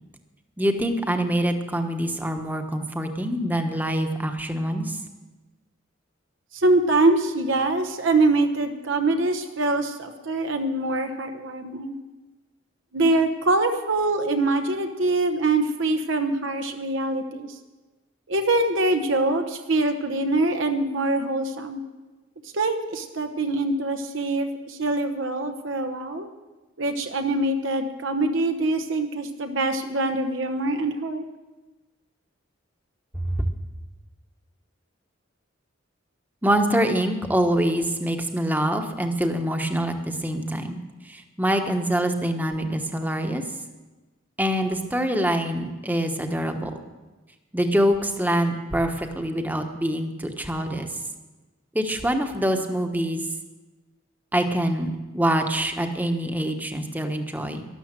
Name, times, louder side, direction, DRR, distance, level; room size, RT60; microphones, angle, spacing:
voice 1, 0.6-5.0 33.1-33.3 36.4-40.8 41.0-43.4 44.4-46.8 47.5-50.9 51.7-53.2 54.3-57.7, equal, 10° right, 6 dB, 1.1 m, -25 dB
voice 2, 6.5-11.9 12.9-17.6 18.3-21.8 22.5-26.3 26.8-31.2, right 2 dB, 70° right, 6 dB, 1.0 m, -24 dB
12.5 x 11.5 x 7.6 m, 1.2 s
head